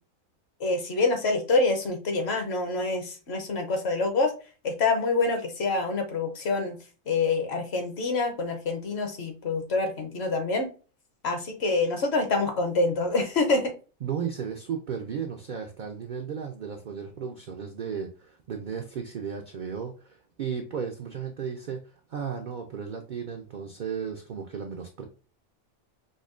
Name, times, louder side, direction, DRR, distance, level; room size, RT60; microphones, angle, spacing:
voice 1, 0.6-4.3 4.6-6.8 7.1-10.7 11.2-13.7, left 3 dB, 60° left, 5 dB, 0.9 m, -26 dB
voice 2, 14.0-21.8 22.1-25.0, right 7 dB, 75° right, 3 dB, 0.4 m, -34 dB
5.2 x 2.1 x 2.4 m, 0.35 s
omnidirectional pair, 1.4 m